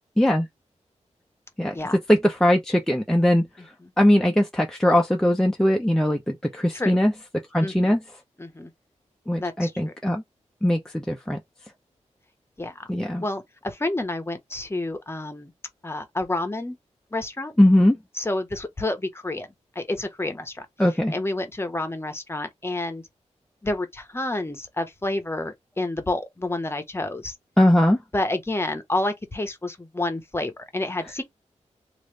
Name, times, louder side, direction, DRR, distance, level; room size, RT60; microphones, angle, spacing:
voice 1, 0.2-0.5 1.6-1.8 2.1-3.5 4.0-7.1 7.5-8.0 9.3-10.2 10.6-11.4 12.9-13.2 17.6-18.0 20.8-21.1 27.6-28.0, left 1 dB, 5° left, 0.6 m, -20 dB
voice 2, 7.6-8.0 8.4-8.7 9.4-9.9 12.6-12.9 13.2-15.5 15.8-16.8 17.1-17.5 18.2-19.5 19.7-20.7 21.1-23.0 23.6-27.3 28.1-31.2, left 2 dB, 20° left, 0.9 m, -29 dB
3.1 x 2.6 x 3.2 m
wide cardioid pair, 75°, 12 cm